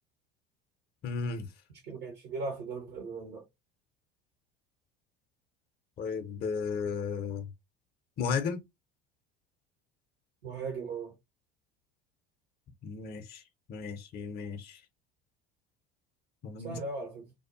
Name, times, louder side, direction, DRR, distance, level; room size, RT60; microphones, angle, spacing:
voice 1, 1.0-1.5 6.0-7.5 8.2-8.6 12.8-13.4 13.7-14.8 16.4-16.8, left 5 dB, 30° left, 0.5 m, -34 dB
voice 2, 1.8-3.4 10.4-11.1 16.6-17.3, right 3 dB, 70° right, 1.0 m, -38 dB
2.6 x 2.3 x 2.4 m
hypercardioid pair, 70°, 33 cm